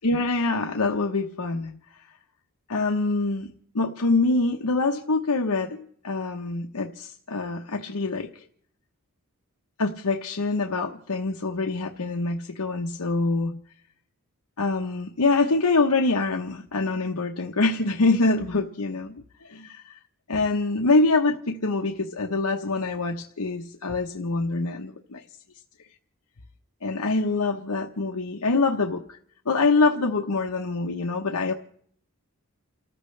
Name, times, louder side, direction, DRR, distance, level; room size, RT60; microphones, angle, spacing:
voice 1, 0.0-1.7 2.7-3.5 3.7-5.8 6.0-8.4 9.8-13.6 14.6-20.0 20.3-25.2 26.8-29.2 29.5-31.5, left 3 dB, 85° left, 3 dB, 1.0 m, -25 dB
29.5 x 14.0 x 3.3 m, 0.62 s
head